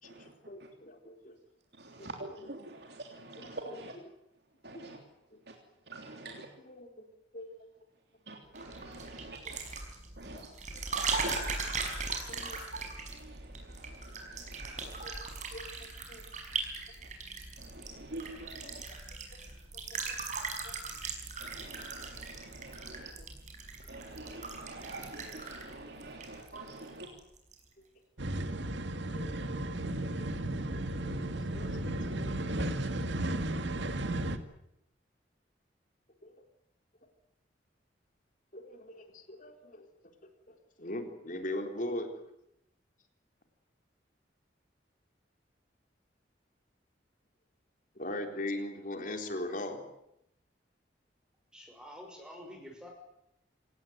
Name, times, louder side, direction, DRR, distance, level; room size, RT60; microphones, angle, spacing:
voice 1, 0.0-1.3 2.0-2.1 3.4-3.5 5.3-5.4 6.2-6.3 6.6-7.0 7.3-7.5 10.3-10.4 10.9-11.0 12.3-12.6 15.0-15.2 15.5-16.2 18.6-19.0 19.3-19.4 19.9-20.8 22.9-23.0 28.9-29.3 30.2-30.3 30.7-30.8 31.3-32.3 36.2-36.3 38.5-39.9 40.5-42.1 48.0-49.8, left 1 dB, 45° left, 5 dB, 4.0 m, -41 dB
voice 2, 1.8-3.9 4.6-5.0 5.5-5.6 5.9-6.5 8.3-9.6 10.2-10.5 11.2-11.6 13.1-15.1 17.6-18.9 21.4-23.1 23.9-27.1, right 2 dB, 60° right, 2 dB, 3.3 m, -46 dB
sound 1, 8.6-26.9 27.2-27.6, right 4 dB, 40° right, 5.5 m, -39 dB
sound 2, 28.2-34.4, right 1 dB, 75° right, 2.0 m, -34 dB
voice 3, 51.5-52.9, equal, 5° right, 2 dB, 5.7 m, -48 dB
27.0 x 18.0 x 9.5 m, 0.81 s
head